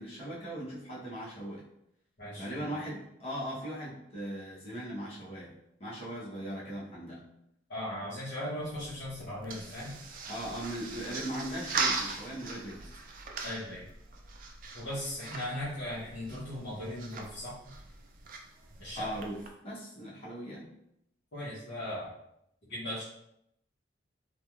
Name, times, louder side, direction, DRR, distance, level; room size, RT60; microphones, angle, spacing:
voice 1, 0.0-1.6 2.4-5.5 5.8-7.2 10.3-12.9 19.0-20.7, right 1 dB, 30° left, -7 dB, 0.8 m, -39 dB
voice 2, 2.2-2.8 7.7-9.9 13.4-13.8 14.7-17.6 18.8-19.1 21.3-22.1 22.7-23.0, left 1 dB, 65° left, -10 dB, 0.9 m, -38 dB
sound 1, 8.6-19.5, right 4 dB, 45° right, 0.3 m, -40 dB
3.0 x 2.3 x 2.3 m, 0.77 s
head